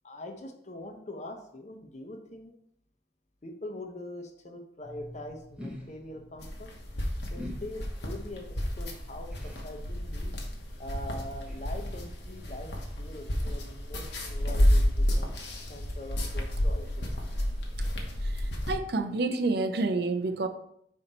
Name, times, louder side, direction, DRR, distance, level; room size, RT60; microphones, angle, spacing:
voice 1, 0.0-2.5 3.4-6.7 7.3-10.3 10.8-12.7 13.0-15.3 15.7-17.1, left 1 dB, 40° left, 4 dB, 0.8 m, -43 dB
sound 1, 4.8-12.1, left 1 dB, 5° right, 0.8 m, -48 dB
sound 2, 6.4-18.7, equal, 65° left, 1.1 m, -30 dB
voice 2, 18.2-20.5, right 3 dB, 60° right, 8 dB, 0.5 m, -29 dB
5.4 x 4.2 x 4.2 m, 0.71 s
head